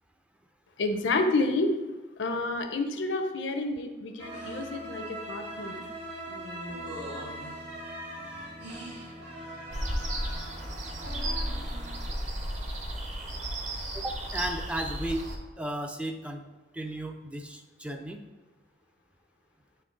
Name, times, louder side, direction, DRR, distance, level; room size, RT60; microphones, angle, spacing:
voice 1, 0.8-1.7 2.2-5.8, left 2 dB, 80° left, 6 dB, 0.6 m, -29 dB
sound 1, 4.2-12.1, right 1 dB, 80° right, 1.5 m, -40 dB
sound 2, 9.7-15.4, right 1 dB, 40° right, 0.8 m, -34 dB
voice 2, 13.9-15.3 15.6-16.4 16.7-18.2, right 1 dB, 5° right, 4 dB, 0.4 m, -34 dB
7.8 x 3.2 x 3.8 m, 1.2 s
head